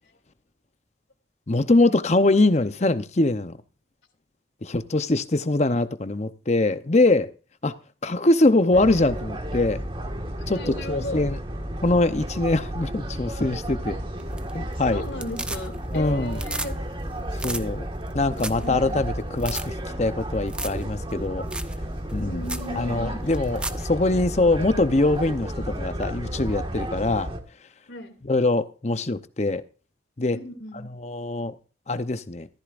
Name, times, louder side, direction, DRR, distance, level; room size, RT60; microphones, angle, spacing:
voice 1, 1.5-3.6 4.6-7.3 7.6-7.7 8.0-9.8 10.5-11.4 11.8-14.0 14.5-15.0 15.9-16.4 17.4-17.9 18.1-21.5 22.1-22.4 22.8-27.3 28.2-29.6 30.2-30.4 31.0-31.6 31.9-32.5, left 2 dB, 35° left, 0.8 m, -23 dB
sound 1, 8.7-27.4, right 1 dB, 30° right, 1.7 m, -32 dB
voice 2, 10.5-11.3 14.9-16.7 18.6-19.0 22.2-23.2 27.9-28.1 30.3-30.9, left 1 dB, 75° left, 2.6 m, -35 dB
sound 2, 14.2-14.7 15.0-16.0 16.3-16.7 17.0-17.1 17.3-17.6 18.1-18.2 18.4-18.7 19.0-19.1 19.4-19.6 20.5-20.8 21.1-21.2 21.5-21.7 22.1-22.2 22.5-22.7 23.3-23.8 26.0-26.1, right 2 dB, 5° right, 0.6 m, -33 dB
15.0 x 13.5 x 2.5 m
head